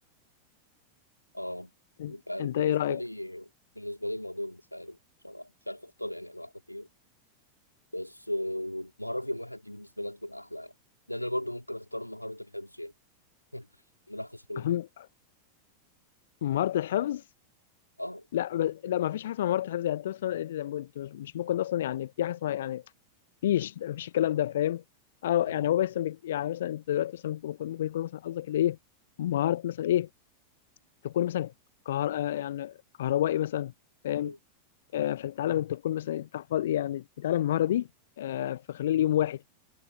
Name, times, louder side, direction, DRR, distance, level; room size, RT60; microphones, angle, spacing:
voice 1, 1.3-1.7 2.1-3.5 3.7-5.0 5.2-6.9 7.9-10.7 11.1-12.9 13.5-13.7 14.1-14.8 18.0-18.2 25.4-25.7 34.2-34.4 38.4-38.5, left 1 dB, 90° left, 3.4 m, -37 dB
voice 2, 2.0-3.0 14.6-15.1 16.4-17.3 18.3-22.8 23.4-24.8 25.2-28.8 29.2-30.1 31.0-31.5 31.9-32.7 33.0-33.7 34.0-34.3 34.9-37.9 38.2-39.4, left 12 dB, 60° left, 0.6 m, -29 dB
figure-of-eight pair, 90°, 0 cm